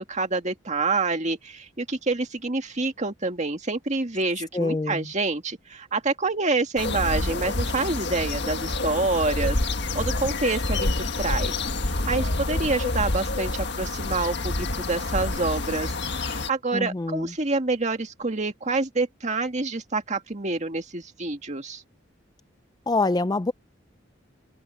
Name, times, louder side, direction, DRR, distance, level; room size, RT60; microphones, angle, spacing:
voice 1, 0.0-9.6 9.9-21.8, right 3 dB, 35° right, 2.0 m, -27 dB
voice 2, 4.5-5.1 16.7-17.3 22.9-23.5, left 2 dB, 20° left, 0.4 m, -25 dB
sound 1, 6.8-16.5, left 2 dB, 60° left, 1.7 m, -27 dB
open air
head